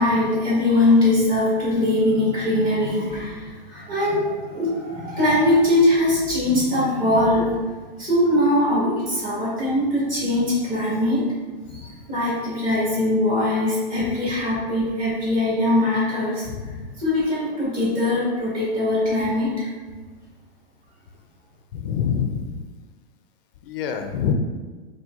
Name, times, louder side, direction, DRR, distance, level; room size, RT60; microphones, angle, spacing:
voice 1, 0.0-7.6 8.0-11.3 11.7-16.5 17.0-19.7, left 1 dB, 30° right, -8 dB, 1.4 m, -21 dB
voice 2, 16.4-17.0 21.7-22.6 23.6-24.3, left 8 dB, 70° left, 5 dB, 0.4 m, -27 dB
4.4 x 2.2 x 2.4 m, 1.4 s
hypercardioid pair, 130°, 30 cm